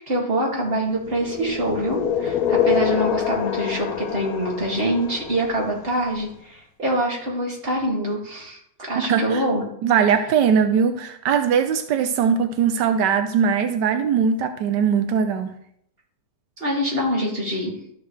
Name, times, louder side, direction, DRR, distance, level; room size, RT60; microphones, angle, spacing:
voice 1, 0.1-9.6 16.6-17.8, right 1 dB, 35° right, -3 dB, 2.7 m, -25 dB
sound 1, 1.0-6.0, left 8 dB, 65° left, 1.1 m, -25 dB
voice 2, 9.0-9.4 9.8-15.5, right 7 dB, 85° right, 8 dB, 1.3 m, -20 dB
12.5 x 6.8 x 3.3 m, 0.70 s
omnidirectional pair, 1.8 m